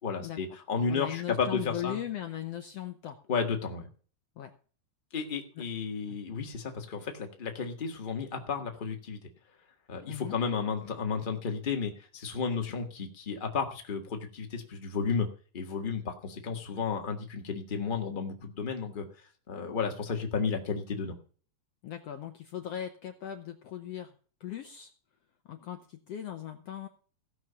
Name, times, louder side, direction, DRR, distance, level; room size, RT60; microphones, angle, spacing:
voice 1, 0.0-2.0 3.3-3.9 5.1-9.2 9.9-15.3 15.5-19.0 19.5-21.2, left 5 dB, 25° left, 3 dB, 1.0 m, -33 dB
voice 2, 0.9-3.2 4.4-4.5 5.6-5.7 10.1-10.3 21.8-24.1 24.4-24.9 25.4-26.9, left 11 dB, 70° left, 6 dB, 1.5 m, -38 dB
16.0 x 6.2 x 6.9 m, 0.41 s
omnidirectional pair, 4.0 m